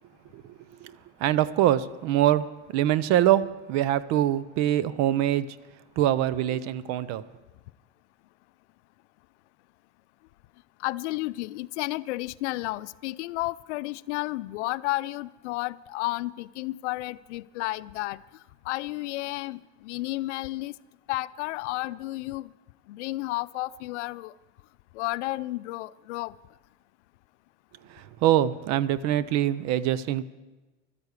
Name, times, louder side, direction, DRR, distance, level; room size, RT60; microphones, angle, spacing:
voice 1, 1.2-5.6 6.0-7.2 27.9-30.2, right 12 dB, 50° right, 18 dB, 0.7 m, -24 dB
voice 2, 10.8-18.2 18.6-20.7 21.1-22.5 22.9-24.3 24.9-26.3, left 19 dB, 80° left, 17 dB, 0.6 m, -32 dB
12.5 x 10.5 x 8.2 m, 1.2 s
supercardioid pair, 125°, 34 cm